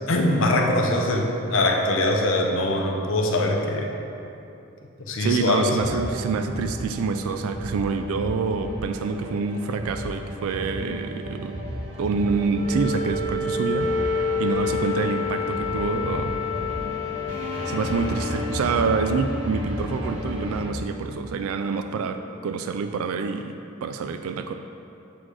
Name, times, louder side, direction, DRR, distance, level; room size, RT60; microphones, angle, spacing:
voice 1, 0.1-3.9 5.1-5.9, left 1 dB, 65° left, 1 dB, 0.7 m, -22 dB
voice 2, 5.2-11.6 12.0-16.3 17.7-24.5, right 4 dB, 80° right, 8 dB, 0.3 m, -27 dB
sound 1, 5.8-20.6, equal, 60° right, 1.2 m, -33 dB
Wind instrument woodwind instrument, 12.5-18.8, left 4 dB, 35° left, 1.1 m, -28 dB
7.6 x 4.1 x 4.8 m, 2.8 s
head